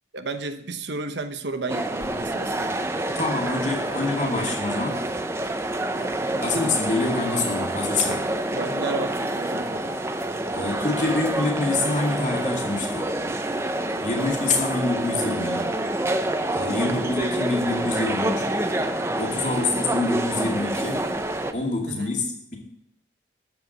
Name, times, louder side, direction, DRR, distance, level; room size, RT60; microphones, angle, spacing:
voice 1, 0.1-2.9 6.0-6.4 8.5-9.8 16.8-17.1 19.4-19.7 21.9-22.1, right 3 dB, 70° right, 8 dB, 1.0 m, -33 dB
sound 1, 1.7-21.5, right 1 dB, 15° right, 0.6 m, -27 dB
voice 2, 3.1-5.1 6.4-8.3 10.5-13.1 14.0-15.7 16.5-18.5 19.2-21.1 21.5-22.6, left 3 dB, 40° left, -1 dB, 2.4 m, -26 dB
13.5 x 4.7 x 8.0 m, 0.74 s
head